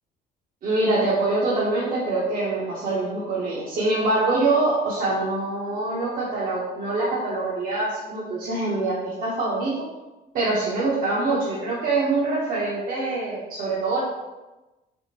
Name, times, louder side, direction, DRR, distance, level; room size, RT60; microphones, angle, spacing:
voice 1, 0.6-9.8 10.3-14.0, right 2 dB, 55° right, -7 dB, 0.7 m, -24 dB
3.4 x 2.0 x 2.8 m, 1.1 s
cardioid pair, 110°, 17 cm